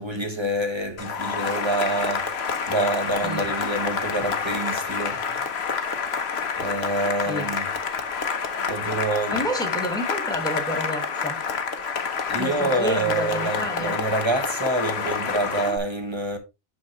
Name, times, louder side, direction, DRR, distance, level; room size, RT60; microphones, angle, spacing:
voice 1, 0.0-5.5 6.6-7.7 8.7-9.4 12.3-16.4, right 1 dB, 25° right, 1.3 m, -27 dB
Cheering / Applause, 1.0-15.8, left 6 dB, 65° left, 1.1 m, -28 dB
voice 2, 9.3-11.4 12.4-14.0, equal, 5° left, 1.5 m, -30 dB
11.0 x 4.0 x 3.0 m
omnidirectional pair, 1.2 m